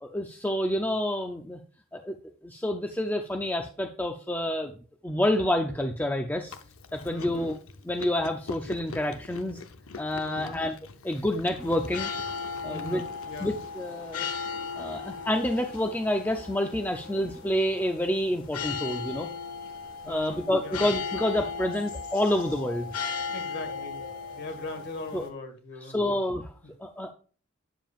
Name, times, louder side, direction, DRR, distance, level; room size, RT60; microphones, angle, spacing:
voice 1, 0.0-1.6 1.9-2.2 2.4-4.7 5.0-6.5 6.9-7.6 7.8-9.6 10.0-10.7 11.0-12.1 12.6-13.0 13.4-14.3 14.8-19.3 20.1-22.9 25.1-25.2 25.9-26.5 26.8-27.1, left 1 dB, 10° left, 4 dB, 0.4 m, -28 dB
Chewing mastication, 6.5-13.7, left 4 dB, 75° left, 0.7 m, -44 dB
voice 2, 7.0-7.5 10.2-10.6 12.6-13.5 20.0-20.8 23.3-26.2 26.6-26.7, left 2 dB, 50° left, 5 dB, 1.6 m, -41 dB
sound 1, 11.6-25.3, left 5 dB, 90° left, 1.5 m, -37 dB
9.0 x 7.1 x 2.4 m, 0.40 s
head